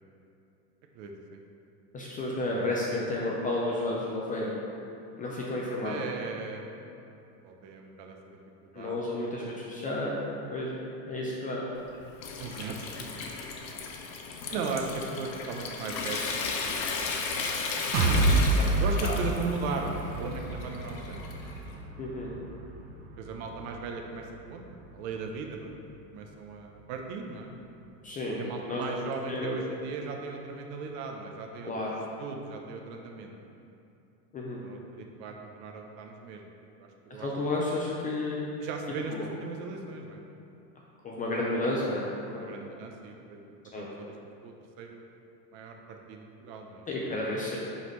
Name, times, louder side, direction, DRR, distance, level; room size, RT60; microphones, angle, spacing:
voice 1, 0.9-1.4 2.5-3.1 5.8-6.6 7.4-9.0 11.1-11.2 12.4-13.3 14.5-17.0 17.3-17.7 18.8-21.2 23.2-24.6 24.9-25.8 26.1-27.5 28.3-31.7 32.2-33.5 34.6-36.5 36.8-37.3 38.6-40.2 42.3-44.2 44.4-45.0 45.5-46.8 47.5-47.6, right 4 dB, 50° right, 2 dB, 0.9 m, -38 dB
voice 2, 1.9-4.5 5.2-6.0 8.7-10.2 10.5-10.7 11.1-11.6 18.6-18.7 19.0-19.1 22.0-22.3 28.0-28.4 28.6-28.8 29.3-29.6 31.6-31.9 34.3-34.6 37.2-38.4 39.1-39.3 41.0-42.5 43.7-43.9 46.9-47.6, left 2 dB, 15° left, -4 dB, 0.4 m, -31 dB
Water tap faucet / Sink (filling or washing) / Trickle dribble, 11.8-21.7, left 4 dB, 90° left, 1.0 m, -35 dB
sound 1, 17.9-25.7 26.1-26.2 26.7-26.8, right 2 dB, 85° right, 0.9 m, -30 dB
9.5 x 4.1 x 3.1 m, 2.7 s
supercardioid pair, 120°, 50 cm